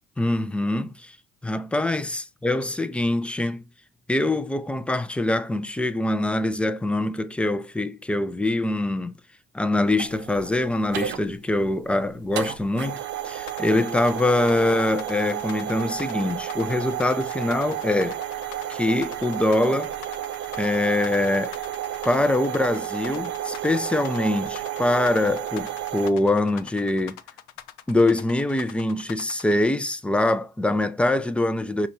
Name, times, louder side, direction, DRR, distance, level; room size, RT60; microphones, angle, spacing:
voice 1, 0.2-1.2 1.4-3.6 4.1-9.2 9.5-18.2 18.7-19.9 20.6-21.6 22.0-27.2 27.9-31.9, left 1 dB, 5° left, 0.4 m, -24 dB
sound 1, 9.9-26.1, right 11 dB, 65° right, 0.8 m, -32 dB
sound 2, 13.5-29.5, left 12 dB, 75° left, 0.5 m, -43 dB
4.9 x 2.3 x 4.3 m
hypercardioid pair, 70°, 21 cm